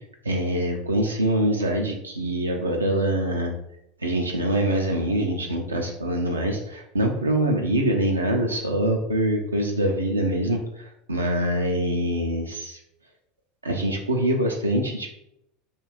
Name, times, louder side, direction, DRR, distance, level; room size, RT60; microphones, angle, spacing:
voice 1, 0.2-3.5 4.0-12.8 13.6-15.1, right 1 dB, 90° right, 1 dB, 0.3 m, -24 dB
2.6 x 2.2 x 3.1 m, 0.78 s
figure-of-eight pair, 80°, 0 cm